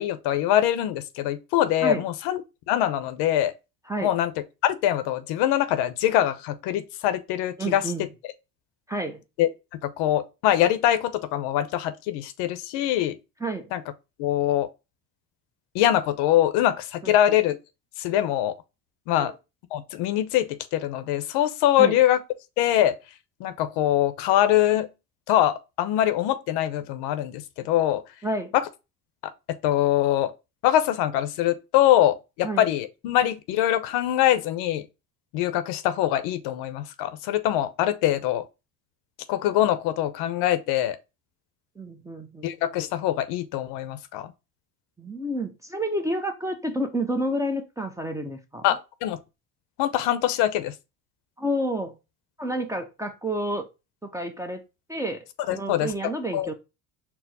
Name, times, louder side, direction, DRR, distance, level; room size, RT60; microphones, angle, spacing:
voice 1, 0.0-2.4 2.7-3.5 4.0-4.3 4.6-7.8 9.4-9.5 9.8-13.1 13.7-13.8 14.2-14.7 15.7-17.6 18.0-18.5 19.1-19.3 19.7-22.2 22.6-22.9 23.4-24.9 25.3-28.0 28.5-28.6 29.6-30.3 30.6-34.8 35.3-38.4 39.3-41.0 42.4-44.3 48.6-49.2 49.8-50.7 55.5-55.9 56.3-56.5, left 12 dB, 75° left, 0.7 m, -23 dB
voice 2, 7.6-8.1 8.9-9.2 13.4-13.7 17.0-17.4 19.2-19.3 21.8-22.0 28.2-28.5 32.4-32.6 41.8-42.5 45.0-48.7 51.4-52.0 52.4-53.7 54.0-54.6 54.9-56.5, right 1 dB, 10° right, 0.5 m, -30 dB
4.5 x 2.0 x 4.0 m
cardioid pair, 110°, 42 cm